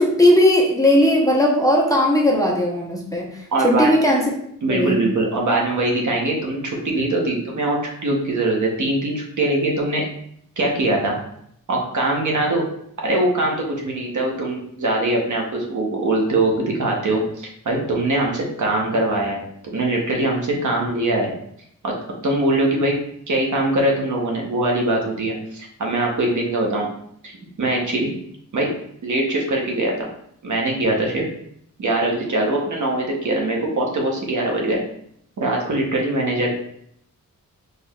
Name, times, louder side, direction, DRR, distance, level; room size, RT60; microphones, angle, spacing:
voice 1, 0.0-3.3 3.6-4.3 4.7-5.0, left 1 dB, 10° left, -2 dB, 0.8 m, -17 dB
voice 2, 3.5-3.9 4.6-10.0 10.6-11.2 11.7-12.6 13.0-21.3 21.8-21.9 22.2-22.9 23.3-26.9 27.2-28.1 28.5-28.7 29.0-30.1 30.4-31.3 31.8-34.8 35.4-36.5, right 2 dB, 60° right, -1 dB, 1.0 m, -22 dB
4.4 x 3.2 x 2.4 m, 0.70 s
wide cardioid pair, 85°, 33 cm